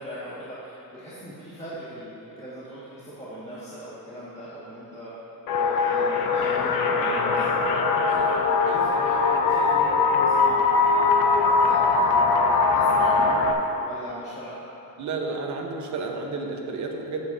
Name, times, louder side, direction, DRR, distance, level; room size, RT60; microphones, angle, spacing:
voice 1, 0.0-5.1 5.6-14.6, right 1 dB, 20° left, -12 dB, 2.0 m, -40 dB
sound 1, 5.5-13.5, left 4 dB, 75° left, 0.9 m, -21 dB
voice 2, 15.0-17.2, right 3 dB, 55° right, 1 dB, 1.2 m, -31 dB
14.0 x 8.1 x 2.8 m, 2.9 s
cardioid pair, 130°, 35 cm